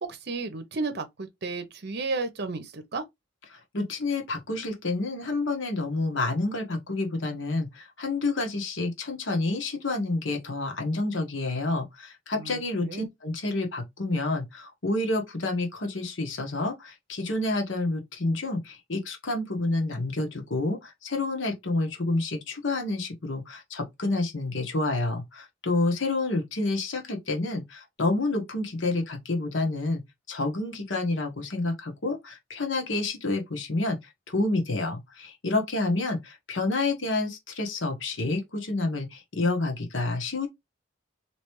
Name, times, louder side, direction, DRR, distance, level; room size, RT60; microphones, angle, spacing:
voice 1, 0.0-3.0 12.3-13.1, right 3 dB, 55° right, 0.8 m, -33 dB
voice 2, 3.5-30.0 30.3-34.0 34.3-40.5, left 2 dB, 75° left, 1.1 m, -29 dB
3.3 x 3.0 x 3.1 m
head